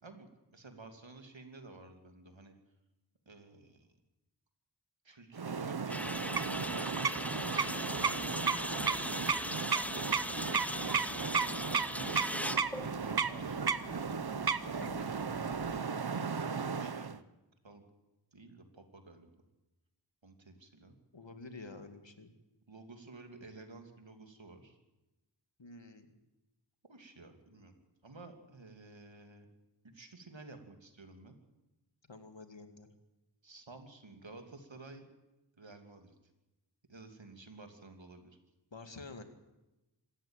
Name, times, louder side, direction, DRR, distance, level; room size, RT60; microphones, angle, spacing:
voice 1, 0.0-2.6 3.3-3.9 5.0-7.5 7.9-11.6 12.6-13.7 14.1-17.2 17.6-17.8 18.3-19.3 20.2-20.9 22.7-24.8 26.9-27.7 28.0-29.5 29.8-31.4 33.4-35.0 35.6-36.1 36.9-38.4, right 3 dB, 90° right, 6 dB, 2.8 m, -53 dB
sound 1, 5.3-17.2, right 5 dB, 55° right, 0.9 m, -34 dB
sound 2, 5.9-15.8, equal, 5° left, 0.8 m, -40 dB
voice 2, 21.1-22.3 25.6-26.2 32.1-32.9 38.7-39.2, left 3 dB, 80° left, 7 dB, 2.4 m, -49 dB
26.0 x 14.0 x 9.0 m, 1.0 s
wide cardioid pair, 50°, 44 cm